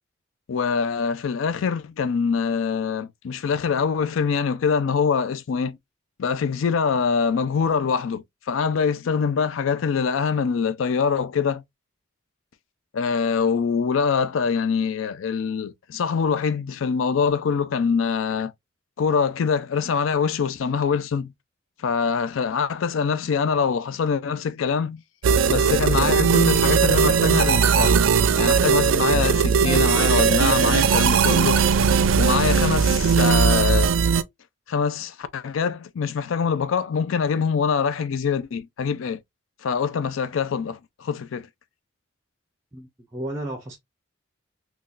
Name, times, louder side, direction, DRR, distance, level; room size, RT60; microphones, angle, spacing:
voice 1, 0.5-5.8 6.2-11.6 12.9-18.5 19.0-21.3 21.8-25.0 25.5-28.0 28.4-31.6 32.2-33.9 34.7-39.2 39.6-41.5, left 6 dB, 80° left, 0.4 m, -24 dB
sound 1, 25.2-34.2, right 6 dB, 80° right, 0.4 m, -19 dB
voice 2, 42.7-43.8, right 1 dB, 15° right, 0.5 m, -33 dB
3.8 x 2.3 x 2.4 m
head